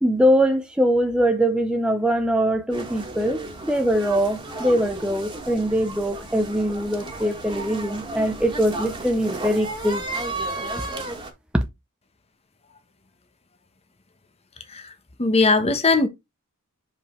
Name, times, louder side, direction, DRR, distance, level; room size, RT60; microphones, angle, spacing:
voice 1, 0.0-10.0 11.5-11.6, equal, 5° right, 0.6 m, -22 dB
sound 1, 2.7-11.3, right 2 dB, 20° right, 1.7 m, -33 dB
voice 2, 15.2-16.1, left 3 dB, 30° left, 1.0 m, -19 dB
5.3 x 5.1 x 4.2 m
head